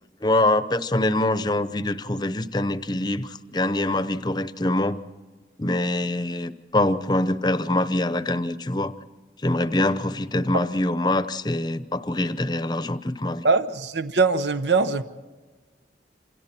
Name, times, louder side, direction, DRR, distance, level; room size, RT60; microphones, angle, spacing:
voice 1, 0.2-5.0 5.6-8.9 9.4-13.4, left 1 dB, 25° left, 0.8 m, -24 dB
voice 2, 13.4-15.0, right 4 dB, 85° right, 1.0 m, -21 dB
28.0 x 27.5 x 4.4 m
head